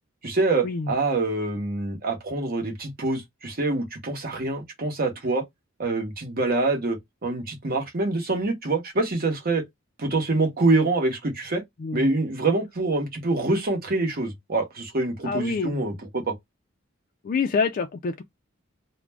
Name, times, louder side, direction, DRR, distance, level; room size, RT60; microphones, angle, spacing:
voice 1, 0.2-5.4 5.8-9.6 10.0-11.6 11.9-16.3, right 2 dB, 45° right, 0.9 m, -25 dB
voice 2, 15.2-15.8 17.2-18.2, left 4 dB, 40° left, 0.3 m, -26 dB
2.4 x 2.1 x 3.3 m
head